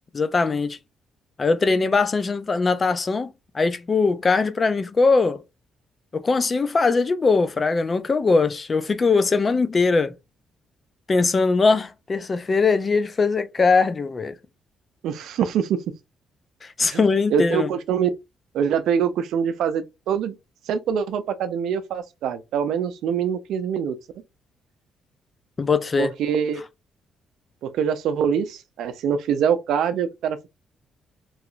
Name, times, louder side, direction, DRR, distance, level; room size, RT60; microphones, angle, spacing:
voice 1, 0.1-0.8 1.4-3.3 3.5-5.4 6.1-10.2 11.1-14.3 16.6-17.7 25.6-26.1, left 4 dB, 35° left, 0.5 m, -21 dB
voice 2, 15.0-15.8 16.8-17.0 17.3-18.1 18.5-20.3 20.7-24.0 26.0-26.6 27.6-30.5, right 7 dB, 80° right, 0.5 m, -24 dB
3.1 x 2.8 x 2.5 m
cardioid pair, 90°, 0 cm